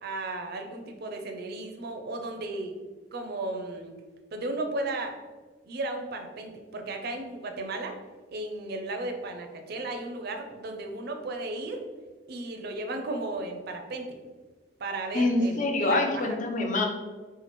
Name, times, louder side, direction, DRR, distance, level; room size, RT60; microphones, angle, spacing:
voice 1, 0.0-2.7 3.1-3.9 4.3-5.2 5.6-8.0 8.3-11.8 12.3-14.2 14.8-16.2, right 2 dB, 60° right, 4 dB, 0.5 m, -35 dB
voice 2, 15.1-16.8, left 2 dB, 45° left, 2 dB, 0.5 m, -25 dB
2.9 x 2.4 x 4.2 m, 1.4 s
head